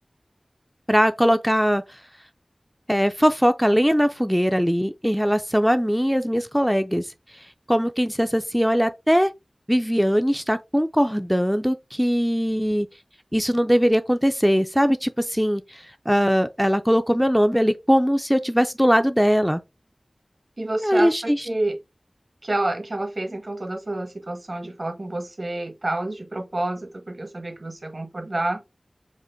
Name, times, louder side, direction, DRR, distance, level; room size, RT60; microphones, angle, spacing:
voice 1, 0.9-2.0 2.9-7.1 7.7-9.3 9.7-12.9 13.3-19.6 20.7-21.5, equal, ahead, 0.3 m, -21 dB
voice 2, 20.6-21.8 22.4-28.6, right 2 dB, 60° right, 1.0 m, -29 dB
5.0 x 2.0 x 3.8 m
wide cardioid pair, 50°, 0 cm